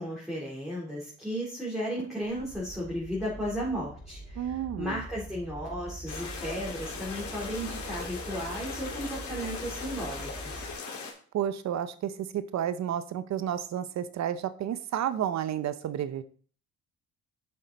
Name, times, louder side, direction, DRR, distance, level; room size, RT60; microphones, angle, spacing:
voice 1, 0.0-10.7, equal, ahead, -7 dB, 3.5 m, -35 dB
sound 1, 2.2-10.7, right 1 dB, 35° left, 3.8 m, -44 dB
voice 2, 4.4-5.0 11.3-16.2, right 10 dB, 65° right, 13 dB, 0.7 m, -31 dB
sound 2, 6.1-11.1, left 4 dB, 70° left, 2.8 m, -39 dB
7.3 x 6.7 x 4.1 m, 0.43 s
cardioid pair, 90°, 30 cm